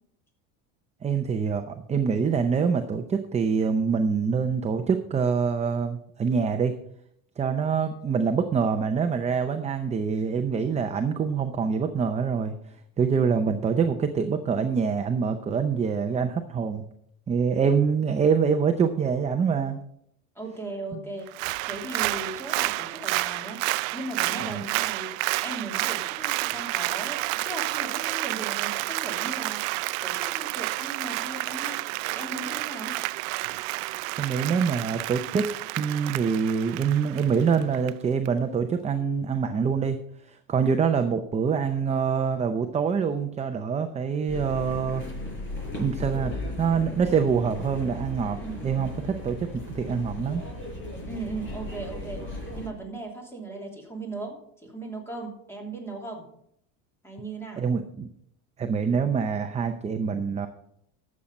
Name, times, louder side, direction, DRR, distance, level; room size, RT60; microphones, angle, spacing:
voice 1, 1.0-6.7 7.4-12.5 13.0-16.9 17.3-19.8 20.9-21.0 24.5-24.6 34.2-35.5 35.8-40.0 40.3-45.0 45.8-49.5 49.7-50.4 57.6-58.1 58.6-60.5, right 6 dB, 15° right, 7 dB, 0.6 m, -25 dB
voice 2, 20.3-25.1 25.4-31.8 32.1-33.0 48.4-48.6 51.1-52.2 52.5-56.2 57.0-57.6, right 2 dB, 5° left, 0 dB, 3.0 m, -38 dB
Applause, 21.3-37.9 38.3-38.4, right 22 dB, 80° right, 0.5 m, -30 dB
sound 1, 44.3-52.7, left 2 dB, 30° left, 5.5 m, -36 dB
13.0 x 7.4 x 5.3 m, 0.72 s
cardioid pair, 135°, 39 cm